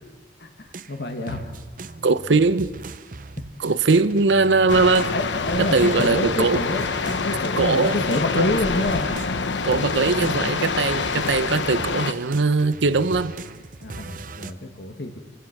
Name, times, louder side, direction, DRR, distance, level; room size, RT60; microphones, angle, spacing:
voice 1, 0.4-1.4 5.1-9.1 13.8-15.2, left 1 dB, 65° left, 4 dB, 1.8 m, -27 dB
sound 1, 0.6-9.4 9.7-14.5, right 3 dB, 50° right, 0.7 m, -39 dB
voice 2, 2.0-2.7 3.6-5.1 5.6-6.6 7.6-8.0 8.4-8.5 9.6-13.3, right 3 dB, 90° right, 13 dB, 0.8 m, -20 dB
sound 2, 4.7-12.1, left 4 dB, 85° left, 1.0 m, -26 dB
28.5 x 16.5 x 6.0 m, 1.4 s
head